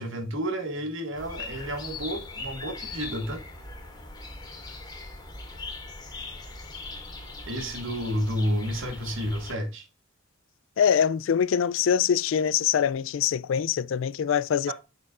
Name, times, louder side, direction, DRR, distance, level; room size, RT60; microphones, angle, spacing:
voice 1, 0.0-3.4 7.5-9.9 14.7-14.8, equal, 65° right, 1.5 m, -30 dB
sound 1, 1.1-9.5, left 3 dB, 20° left, 2.0 m, -40 dB
voice 2, 10.8-14.7, left 8 dB, 65° left, 0.3 m, -24 dB
7.4 x 6.2 x 2.5 m
head